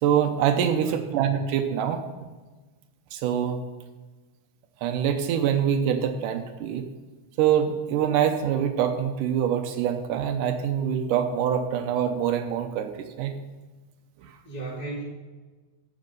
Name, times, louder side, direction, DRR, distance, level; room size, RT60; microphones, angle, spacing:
voice 1, 0.0-2.0 3.1-3.6 4.8-6.9 7.4-12.9 13.2-13.3 14.2-14.3, right 9 dB, 80° right, 7 dB, 2.2 m, -24 dB
voice 2, 0.7-1.1 14.4-15.0, right 3 dB, 15° right, -5 dB, 1.5 m, -36 dB
13.5 x 5.0 x 5.3 m, 1.3 s
omnidirectional pair, 3.8 m